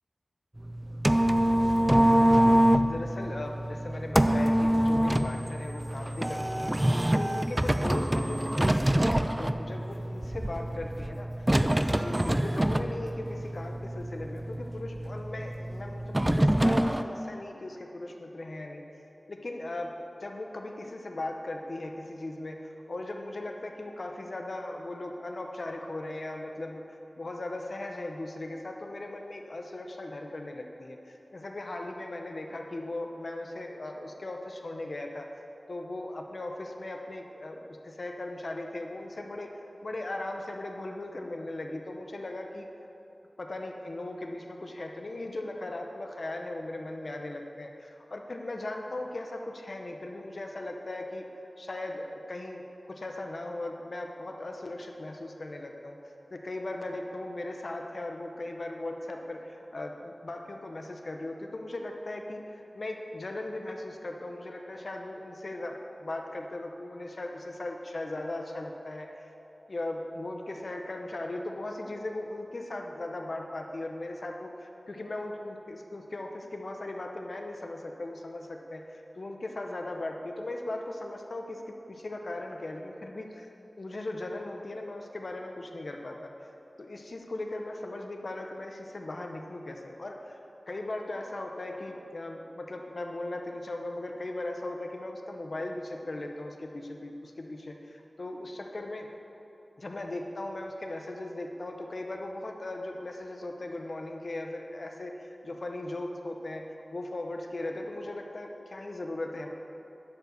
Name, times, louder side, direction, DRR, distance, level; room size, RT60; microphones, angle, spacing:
sound 1, 0.6-17.0, right 1 dB, 20° right, 0.4 m, -26 dB
voice 1, 2.4-18.9 19.3-35.3 35.7-39.5 39.8-42.7 43.4-51.3 51.6-56.0 56.3-69.3 69.7-83.5 83.8-86.3 86.8-90.4 90.7-99.1 99.8-109.5, left 2 dB, 65° left, 3 dB, 0.9 m, -38 dB
10.5 x 4.9 x 6.8 m, 3.0 s
wide cardioid pair, 60°, 0 cm